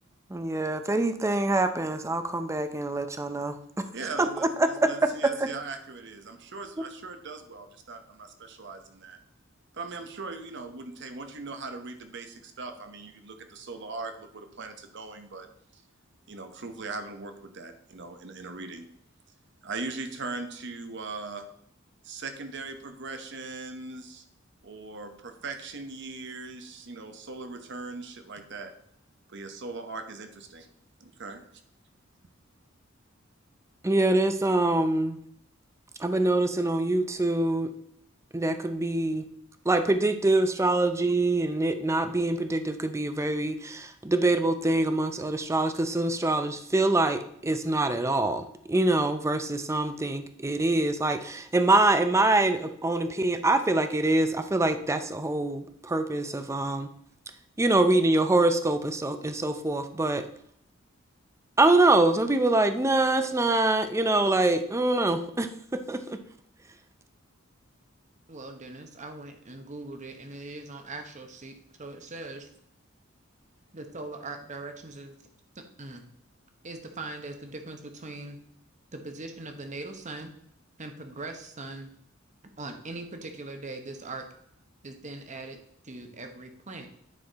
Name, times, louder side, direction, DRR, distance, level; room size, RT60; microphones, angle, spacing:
voice 1, 0.3-3.6 4.2-5.1 5.4-5.5 33.8-35.2 36.0-37.7 38.3-39.2 39.7-56.9 57.6-60.2 61.6-65.5 65.9-66.2, right 2 dB, 15° right, 9 dB, 0.5 m, -25 dB
voice 2, 3.9-9.2 9.7-15.5 16.3-18.9 19.6-21.5 22.0-24.2 24.6-28.7 29.3-30.7 31.0-31.4, right 3 dB, 60° right, 7 dB, 1.0 m, -39 dB
voice 3, 68.3-72.5 73.7-75.1 75.6-76.0 76.6-78.4 78.9-80.3 80.8-81.9 82.6-84.3 84.8-85.6 85.8-86.9, right 2 dB, 35° right, 5 dB, 1.0 m, -40 dB
9.5 x 4.2 x 4.0 m, 0.68 s
head